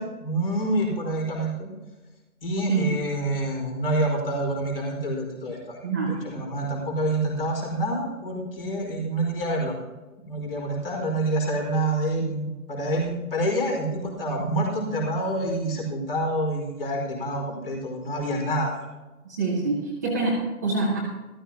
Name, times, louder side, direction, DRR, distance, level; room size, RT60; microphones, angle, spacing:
voice 1, 0.0-1.7 2.4-9.8 10.3-18.8, right 1 dB, 35° left, 0 dB, 4.8 m, -27 dB
voice 2, 5.8-6.2 19.2-21.0, right 3 dB, 10° right, -6 dB, 1.0 m, -25 dB
14.5 x 14.5 x 2.9 m, 1.1 s
figure-of-eight pair, 160°, 46 cm